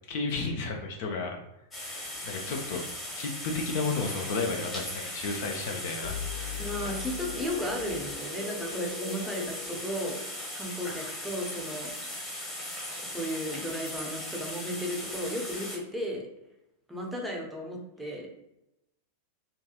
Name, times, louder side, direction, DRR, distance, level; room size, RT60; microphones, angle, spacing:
voice 1, 0.1-1.4 2.2-2.8 3.1-6.8 8.7-8.9, left 3 dB, 50° left, 2 dB, 0.3 m, -33 dB
sound 1, 1.7-15.8, left 1 dB, 15° left, 0.9 m, -38 dB
sound 2, 6.0-10.8, left 5 dB, 70° left, 0.7 m, -41 dB
voice 2, 6.6-10.2 10.5-12.3 13.0-16.2 16.9-18.3, equal, 5° right, -1 dB, 0.6 m, -35 dB
2.6 x 2.3 x 2.4 m, 0.90 s
figure-of-eight pair, 90°, 0 cm